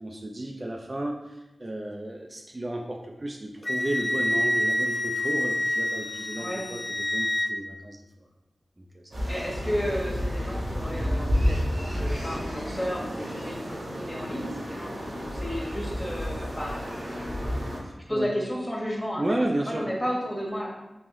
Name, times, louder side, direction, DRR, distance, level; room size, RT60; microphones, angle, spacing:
voice 1, 0.0-8.0 8.8-9.0 17.8-18.3 19.2-19.9, right 1 dB, 40° right, 1 dB, 0.4 m, -33 dB
Wind instrument woodwind instrument, 3.6-7.5, left 1 dB, 40° left, 0.3 m, -27 dB
sound 1, 9.1-17.8, equal, 75° right, 1.3 m, -30 dB
voice 2, 9.2-17.6 18.1-19.3 19.6-20.7, equal, 20° left, -3 dB, 1.2 m, -33 dB
3.8 x 2.9 x 3.0 m, 0.98 s
cardioid pair, 45°, 0 cm